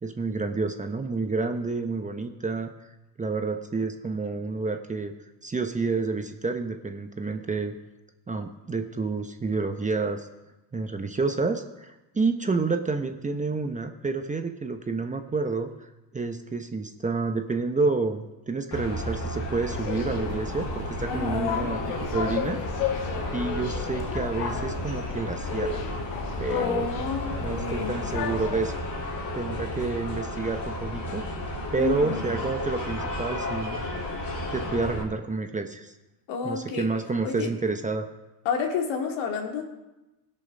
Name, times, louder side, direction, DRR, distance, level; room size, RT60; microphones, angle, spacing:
voice 1, 0.0-2.7 3.2-5.1 5.4-7.8 8.3-10.3 10.7-21.8 22.1-22.6 23.3-25.8 26.4-26.9 27.3-28.7 29.3-31.2 31.7-33.9 34.5-35.9 36.4-38.1, right 4 dB, 15° right, 6 dB, 0.9 m, -29 dB
sound 1, 18.7-35.0, left 1 dB, 40° left, 3.2 m, -33 dB
sound 2, 19.7-28.6, left 6 dB, 85° left, 1.4 m, -33 dB
voice 2, 21.1-21.7 26.6-28.0 31.8-32.4 36.3-36.9 37.2-37.5 38.4-39.6, left 6 dB, 70° left, 2 dB, 2.4 m, -30 dB
17.5 x 6.5 x 5.5 m, 1.0 s
supercardioid pair, 100°, 48 cm